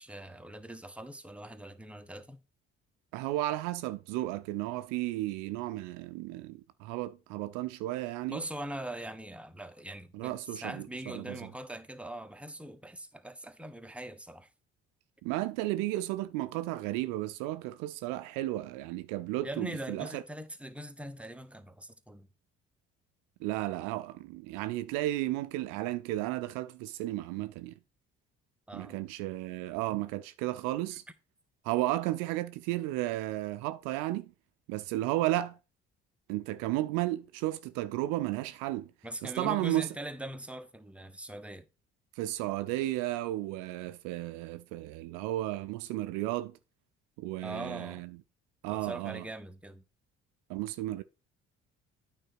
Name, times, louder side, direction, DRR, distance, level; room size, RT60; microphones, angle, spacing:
voice 1, 0.0-2.4 8.3-14.5 19.4-22.3 28.7-29.0 39.0-41.7 47.4-48.0 48.7-49.8, right 1 dB, 5° right, 1.1 m, -42 dB
voice 2, 3.1-8.4 10.1-11.5 15.2-20.2 23.4-27.7 28.7-31.0 31.6-34.3 34.7-35.6 36.3-38.9 39.2-39.9 42.2-46.5 47.2-48.1 48.6-49.2 50.5-51.0, right 16 dB, 70° right, 0.6 m, -33 dB
9.0 x 4.0 x 6.1 m
hypercardioid pair, 50°, 34 cm